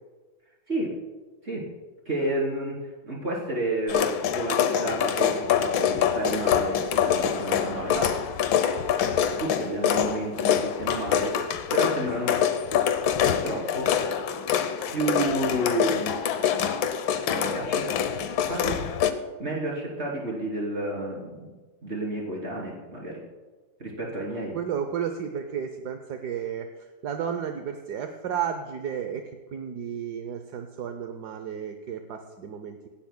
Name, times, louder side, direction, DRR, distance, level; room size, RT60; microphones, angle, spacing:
voice 1, 2.1-2.8 3.0-8.1 9.0-11.4 11.7-12.4 13.2-13.9 14.9-16.1 17.3-17.9 18.5-18.8 19.4-21.5 21.8-23.2 23.8-24.6, right 1 dB, 30° right, -3 dB, 3.6 m, -30 dB
sound 1, 3.9-19.1, left 8 dB, 75° left, 1.5 m, -25 dB
voice 2, 24.3-32.9, right 8 dB, 65° right, 6 dB, 1.2 m, -33 dB
26.0 x 11.5 x 2.2 m, 1.3 s
omnidirectional pair, 2.2 m